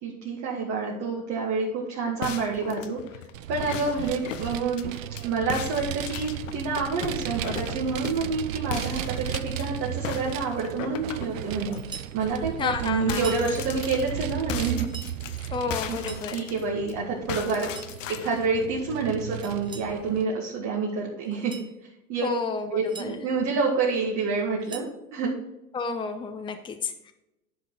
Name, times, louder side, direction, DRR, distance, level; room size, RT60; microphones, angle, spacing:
voice 1, 0.0-3.0 3.5-4.9 5.2-11.8 12.1-14.9 15.3-15.5 15.9-17.7 18.1-21.6 22.1-22.3 22.7-25.3, right 4 dB, 45° right, -3 dB, 1.9 m, -28 dB
sound 1, 2.2-5.2 5.5-8.3 8.7-9.6 10.0-11.8 12.2-12.4 12.6-16.9 17.3-18.5, left 10 dB, 75° left, 0.8 m, -37 dB
Vehicle, 3.3-20.2, right 12 dB, 85° right, 0.5 m, -35 dB
sound 2, 11.7-12.2 13.1-13.5 14.6-15.1 15.8-16.3 17.5-18.0 19.4-19.9 21.3-21.7 22.6-23.1 24.4-25.0, right 5 dB, 10° right, 1.0 m, -43 dB
voice 2, 12.6-13.3 15.5-16.5 22.2-22.7 23.0-23.2 25.7-27.1, left 5 dB, 15° left, 6 dB, 0.7 m, -31 dB
11.0 x 5.1 x 4.0 m, 0.91 s
hypercardioid pair, 90°, 38 cm